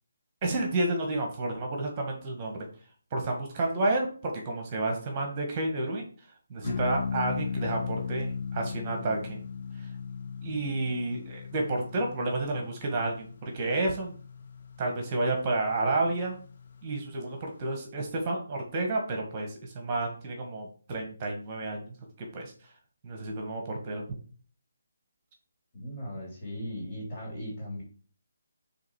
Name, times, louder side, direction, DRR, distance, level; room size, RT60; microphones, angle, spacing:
voice 1, 0.4-2.7 3.1-6.1 6.5-9.4 9.8-9.9 10.4-14.1 14.8-16.4 16.8-22.5 23.0-24.0, right 2 dB, 25° right, 2 dB, 1.6 m, -30 dB
sound 1, 6.6-17.2, left 6 dB, 45° left, 0.8 m, -38 dB
voice 2, 25.7-27.8, equal, 20° left, -6 dB, 3.4 m, -38 dB
7.2 x 3.5 x 4.7 m, 0.41 s
figure-of-eight pair, 150°, 0 cm